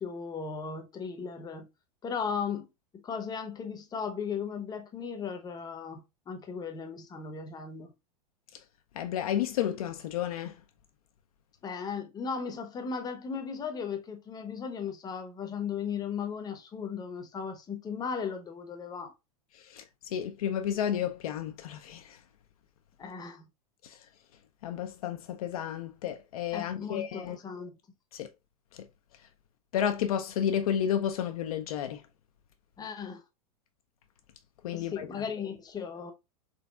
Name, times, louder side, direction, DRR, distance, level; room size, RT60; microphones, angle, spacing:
voice 1, 0.0-1.7 2.0-2.7 3.0-7.9 11.6-19.1 23.0-23.5 26.5-27.8 32.8-33.2 34.7-36.1, left 6 dB, 20° left, 0.8 m, -36 dB
voice 2, 8.9-10.6 19.6-19.8 20.1-22.2 23.8-24.0 24.6-27.4 28.1-28.3 28.7-28.9 29.7-32.0 34.6-35.1, left 9 dB, 65° left, 0.5 m, -31 dB
3.9 x 3.3 x 2.3 m
hypercardioid pair, 100°, 20 cm